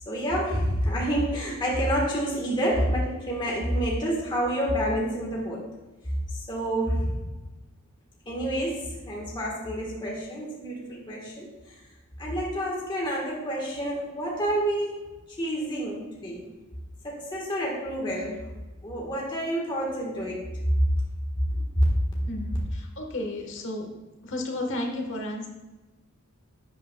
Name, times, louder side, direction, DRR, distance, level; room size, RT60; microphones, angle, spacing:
voice 1, 0.1-5.7 6.3-7.2 8.3-11.7 12.2-15.0 15.4-16.5 17.0-18.4 18.8-20.4 21.5-21.8 22.1-22.3, equal, 20° left, -3 dB, 1.3 m, -28 dB
voice 2, 22.2-23.9 24.2-25.5, left 1 dB, 55° left, 3 dB, 1.3 m, -33 dB
11.5 x 7.9 x 2.3 m, 1.2 s
head